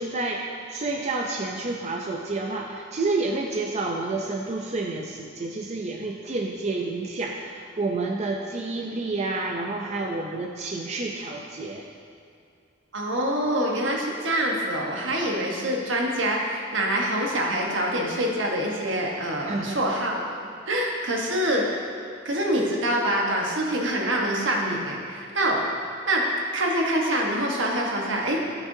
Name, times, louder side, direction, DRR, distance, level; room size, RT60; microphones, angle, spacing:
voice 1, 0.0-11.9 19.4-19.8, right 3 dB, 35° right, 0 dB, 0.5 m, -29 dB
voice 2, 12.9-20.3 20.7-21.9 22.2-25.7 26.1-26.3 26.5-28.4, right 1 dB, 70° right, -1 dB, 1.2 m, -25 dB
13.5 x 6.0 x 2.7 m, 2.5 s
head